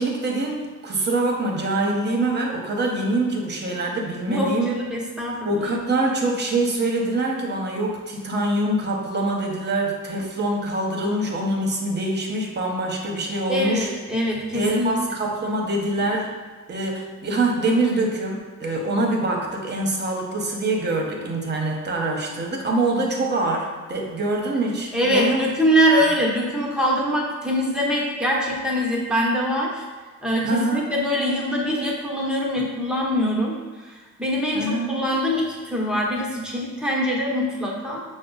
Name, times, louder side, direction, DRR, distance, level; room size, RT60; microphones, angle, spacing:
voice 1, 0.0-4.7 5.4-13.9 14.5-16.3 16.7-25.4 30.4-30.9 34.5-35.0, right 2 dB, 35° right, 0 dB, 0.9 m, -24 dB
voice 2, 4.3-5.6 13.5-15.0 24.9-29.8 30.2-38.0, equal, 5° right, -3 dB, 0.9 m, -23 dB
5.7 x 2.1 x 3.9 m, 1.4 s
cardioid pair, 100°, 31 cm